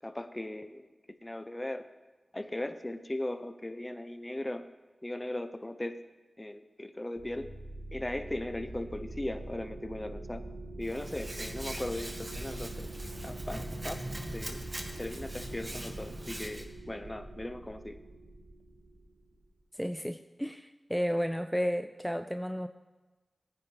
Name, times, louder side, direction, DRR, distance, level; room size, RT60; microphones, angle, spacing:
voice 1, 0.0-0.9 1.2-1.9 2.3-4.7 5.0-6.0 6.4-7.5 7.9-10.4 10.8-12.9 13.2-14.0 14.3-14.6 15.0-18.0, left 1 dB, 25° left, 9 dB, 0.8 m, -38 dB
sound 1, 7.1-19.4, right 1 dB, 85° right, 2.1 m, -43 dB
Hands, 10.8-16.6, right 1 dB, 30° right, 1.7 m, -42 dB
voice 2, 19.7-22.7, equal, ahead, 8 dB, 0.4 m, -32 dB
18.5 x 9.7 x 3.4 m, 1.2 s
cardioid pair, 45°, 0 cm